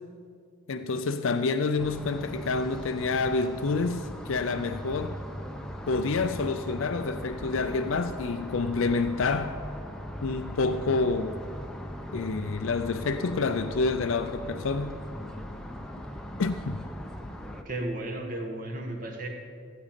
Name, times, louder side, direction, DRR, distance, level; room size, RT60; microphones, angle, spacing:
voice 1, 0.7-5.2 5.9-9.6 10.2-11.4 12.1-15.0 16.4-16.8, left 3 dB, 80° left, 8 dB, 0.5 m, -28 dB
sound 1, 1.8-17.6, equal, 5° left, 0.7 m, -39 dB
voice 2, 17.7-19.3, right 1 dB, 40° right, 1 dB, 1.7 m, -34 dB
16.0 x 8.6 x 5.1 m, 2.2 s
head